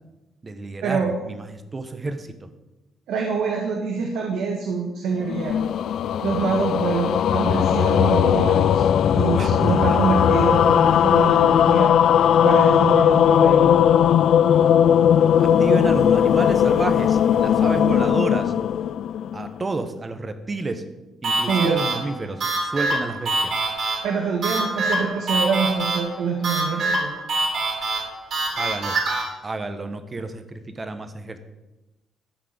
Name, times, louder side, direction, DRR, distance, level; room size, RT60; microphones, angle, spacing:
voice 1, 0.4-2.5 9.3-9.5 9.9-10.0 15.4-18.5 19.3-20.8 21.2-23.5 28.5-29.0 29.4-31.4, right 3 dB, 30° right, 9 dB, 1.3 m, -30 dB
voice 2, 3.1-5.6 6.2-8.8 9.1-11.9 12.4-13.8 21.5-21.8 24.0-27.1, right 5 dB, 80° right, 0 dB, 1.7 m, -25 dB
sound 1, 5.2-19.6, left 9 dB, 70° left, 0.3 m, -18 dB
sound 2, 21.2-29.2, right 2 dB, 60° right, 3.4 m, -25 dB
13.0 x 4.8 x 7.9 m, 1.0 s
cardioid pair, 90°, 0 cm